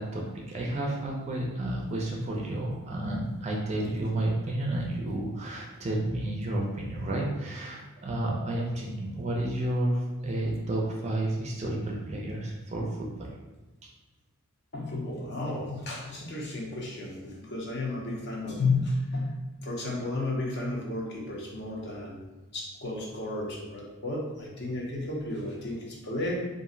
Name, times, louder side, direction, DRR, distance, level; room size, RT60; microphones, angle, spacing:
voice 1, 0.0-13.3 13.8-13.9, right 1 dB, 30° right, -1 dB, 0.4 m, -31 dB
voice 2, 14.7-19.3 19.6-22.2 22.5-26.4, left 2 dB, 50° left, -2 dB, 0.6 m, -32 dB
2.5 x 2.0 x 3.7 m, 1.2 s
head